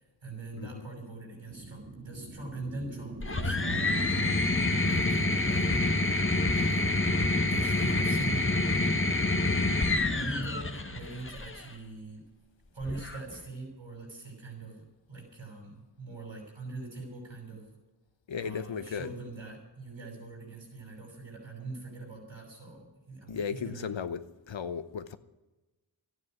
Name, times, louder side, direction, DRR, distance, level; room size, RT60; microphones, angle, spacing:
voice 1, 0.0-6.2 6.5-7.0 7.3-8.7 10.1-12.3 12.7-17.7 18.4-23.9, right 2 dB, 75° right, 7.1 m, -42 dB
sound 1, 1.5-10.4, right 2 dB, 25° right, 2.3 m, -45 dB
sound 2, 3.2-11.6 12.8-13.4, left 2 dB, 25° left, 1.3 m, -27 dB
voice 2, 18.3-19.1 23.3-25.2, left 6 dB, 70° left, 1.0 m, -35 dB
13.0 x 9.6 x 9.4 m
cardioid pair, 50°, 46 cm